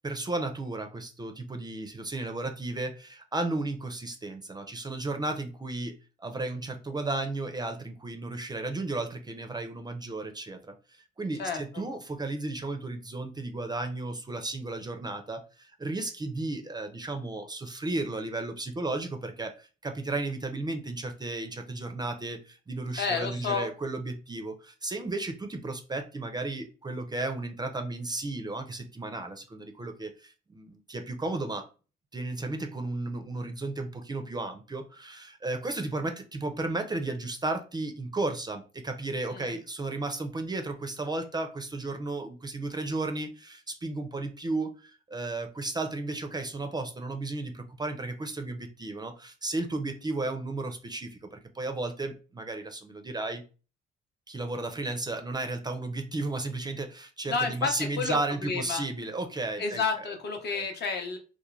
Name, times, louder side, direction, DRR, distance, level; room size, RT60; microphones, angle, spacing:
voice 1, 0.0-31.7 32.1-53.4 54.3-59.8 60.5-60.6, right 2 dB, 20° right, 6 dB, 0.4 m, -34 dB
voice 2, 11.4-11.9 23.0-23.7 39.2-39.5 57.3-58.8 59.6-61.2, left 5 dB, 60° left, 4 dB, 0.7 m, -31 dB
3.1 x 2.1 x 2.3 m, 0.34 s
cardioid pair, 90°, 20 cm